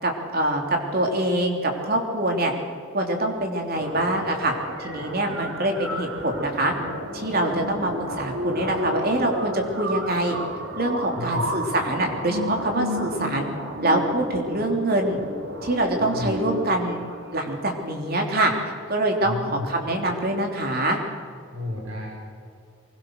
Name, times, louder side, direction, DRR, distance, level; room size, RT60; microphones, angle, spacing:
voice 1, 0.0-0.6 0.9-2.5 2.9-4.5 4.8-6.7 7.1-10.4 10.8-13.5 13.8-15.2 15.6-17.0 17.3-18.5 18.9-21.0, right 1 dB, 45° right, 2 dB, 3.4 m, -24 dB
sound 1, 3.7-17.7, equal, 65° right, 3.9 m, -32 dB
voice 2, 11.2-11.5 16.0-16.4 19.2-19.7 21.5-22.1, left 2 dB, 85° right, -2 dB, 5.4 m, -31 dB
24.0 x 21.0 x 6.6 m, 2.2 s
head